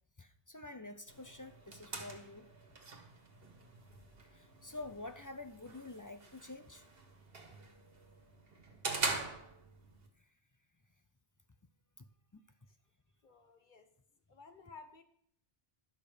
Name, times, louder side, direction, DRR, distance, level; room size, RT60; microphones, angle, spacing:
voice 1, 0.2-2.5 4.2-6.9 10.2-10.3 12.0-12.1 12.3-12.4, left 2 dB, 25° left, 8 dB, 0.5 m, -48 dB
sound 1, 1.1-10.1, right 3 dB, 70° right, 1.6 m, -44 dB
voice 2, 13.2-13.9 14.3-15.0, left 4 dB, 50° left, 7 dB, 1.2 m, -55 dB
12.0 x 6.6 x 5.1 m, 0.67 s
omnidirectional pair, 1.0 m